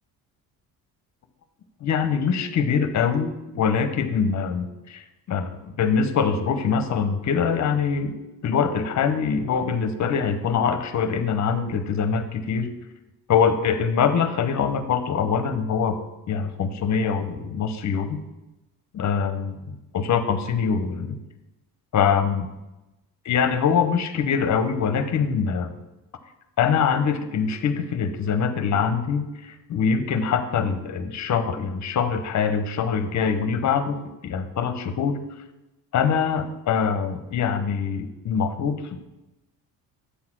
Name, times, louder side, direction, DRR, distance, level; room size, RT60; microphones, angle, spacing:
voice 1, 1.8-5.0 5.3-8.1 8.4-12.7 13.3-16.0 16.3-18.2 18.9-21.2 21.9-22.5 23.2-25.8 26.6-34.0 34.2-35.2 35.9-39.0, left 6 dB, 45° left, 9 dB, 0.9 m, -23 dB
8.3 x 3.9 x 6.1 m, 0.99 s
cardioid pair, 95°, 39 cm